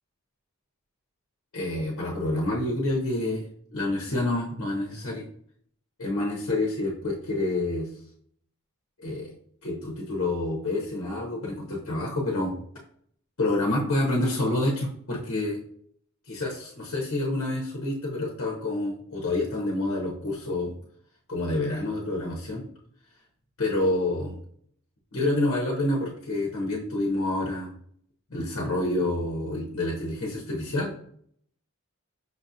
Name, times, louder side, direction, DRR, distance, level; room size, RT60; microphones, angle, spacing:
voice 1, 1.5-3.4 3.7-5.2 6.0-7.9 9.0-9.3 9.6-12.5 13.4-15.6 16.3-20.7 21.3-22.6 23.6-24.3 25.1-27.7 28.3-31.0, left 2 dB, 65° left, -2 dB, 0.8 m, -28 dB
5.7 x 2.4 x 2.7 m, 0.63 s
head